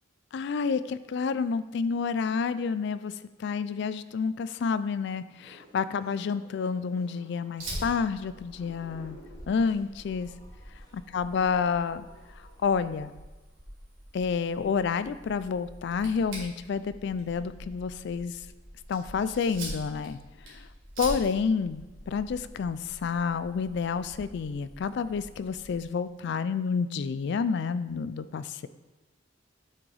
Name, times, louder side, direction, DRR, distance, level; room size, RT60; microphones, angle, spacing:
voice 1, 0.3-9.2 9.5-10.3 11.1-12.0 12.6-13.1 14.1-18.4 18.9-20.2 20.5-20.7 21.0-28.7, left 5 dB, 55° left, 14 dB, 0.3 m, -29 dB
sound 1, 5.4-12.8, equal, 20° left, 1.2 m, -55 dB
Fire, 7.6-25.8, right 1 dB, 80° right, 2.6 m, -44 dB
8.3 x 6.1 x 3.3 m, 1.1 s
head